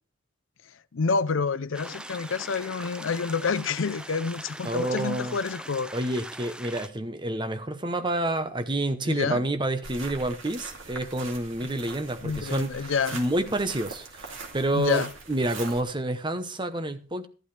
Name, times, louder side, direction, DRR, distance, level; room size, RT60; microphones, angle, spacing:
voice 1, 0.9-5.9 9.1-9.5 12.2-13.2 14.7-15.1, left 5 dB, 70° left, 0.5 m, -28 dB
sound 1, 1.7-6.9, right 1 dB, 5° right, 0.5 m, -41 dB
voice 2, 4.6-5.4 5.9-17.3, right 1 dB, 25° right, 0.9 m, -29 dB
sound 2, 9.8-15.8, right 3 dB, 75° right, 2.4 m, -42 dB
13.0 x 11.5 x 3.3 m
head